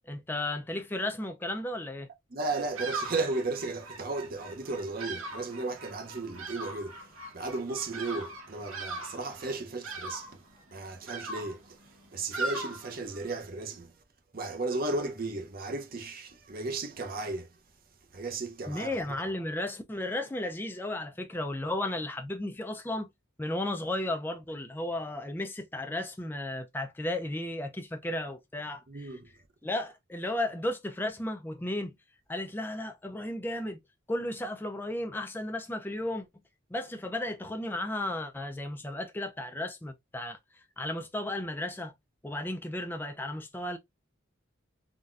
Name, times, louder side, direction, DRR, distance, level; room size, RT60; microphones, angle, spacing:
voice 1, 0.1-2.1 18.7-23.1 23.4-29.1 29.6-31.9 32.3-33.8 34.1-36.3 36.7-41.9 42.2-43.8, left 1 dB, 10° left, 0.3 m, -34 dB
voice 2, 2.3-10.4 10.7-11.8 12.1-13.9 14.3-17.5 18.1-18.9 28.9-29.3, right 3 dB, 45° right, 0.6 m, -35 dB
Bird vocalization bird call bird song, 2.4-13.4, right 2 dB, 90° right, 1.1 m, -40 dB
3.9 x 2.2 x 2.4 m
head